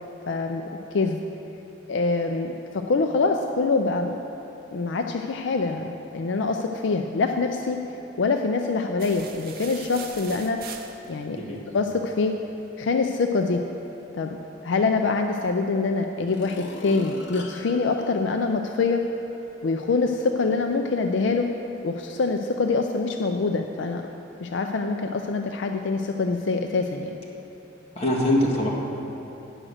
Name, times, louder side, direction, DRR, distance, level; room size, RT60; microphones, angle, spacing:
voice 1, 0.3-0.6 0.9-1.2 1.9-4.1 4.7-7.8 8.2-10.6 11.1-11.4 11.7-12.3 12.8-13.6 14.1-14.4 14.6-19.0 19.6-21.5 21.8-24.0 24.4-27.2, left 4 dB, 70° left, 4 dB, 0.4 m, -25 dB
sound 1, 9.0-11.4, right 7 dB, 50° right, 0.7 m, -41 dB
sound 2, 15.5-15.6 16.1-19.0 19.5-19.6, left 2 dB, 90° left, 1.0 m, -41 dB
voice 2, 27.9-28.7, left 1 dB, 35° left, -4 dB, 1.7 m, -22 dB
9.9 x 6.3 x 6.4 m, 3.0 s
head